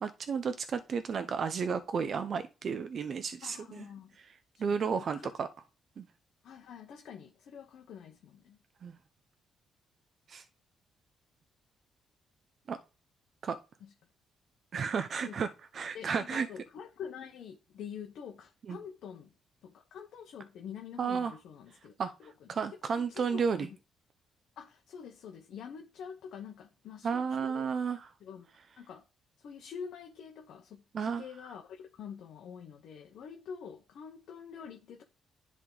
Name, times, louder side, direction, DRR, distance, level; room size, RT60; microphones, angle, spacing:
voice 1, 0.0-3.9 4.6-5.5 6.0-6.1 8.8-8.9 10.3-10.4 12.7-12.8 13.4-13.6 14.7-16.5 18.7-18.8 21.0-21.3 22.0-22.1 22.5-23.7 27.0-28.1 30.9-31.2, right 6 dB, 55° right, 0.5 m, -32 dB
voice 2, 3.4-4.1 4.7-4.8 5.2-5.4 6.4-8.6 13.8-13.9 15.2-15.4 15.9-19.3 19.6-21.9 22.2-22.5 23.0-23.7 24.6-27.7 28.2-28.5 28.8-29.0 29.4-35.0, left 7 dB, 75° left, 0.9 m, -46 dB
10.5 x 3.6 x 3.9 m
cardioid pair, 90°, 0 cm